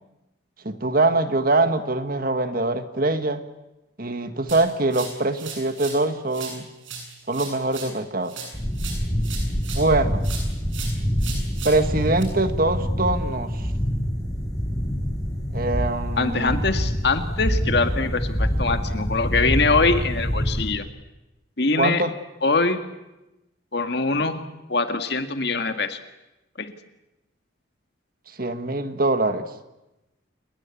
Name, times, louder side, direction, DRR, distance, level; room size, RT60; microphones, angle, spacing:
voice 1, 0.6-3.4 4.0-6.7 7.3-8.3 9.7-10.2 11.6-13.7 15.5-16.7 21.7-22.1 28.4-29.5, right 2 dB, 45° right, 9 dB, 1.7 m, -23 dB
sound 1, 4.5-6.0 6.3-9.9 10.2-12.2, right 5 dB, 75° right, 7.8 m, -38 dB
sound 2, 8.5-20.7, equal, 20° left, 5.1 m, -26 dB
voice 2, 16.2-20.9 21.6-22.0 22.4-22.8 23.7-26.0 26.6-26.7, left 3 dB, 55° left, 7 dB, 2.0 m, -23 dB
29.0 x 21.0 x 8.5 m, 0.98 s
head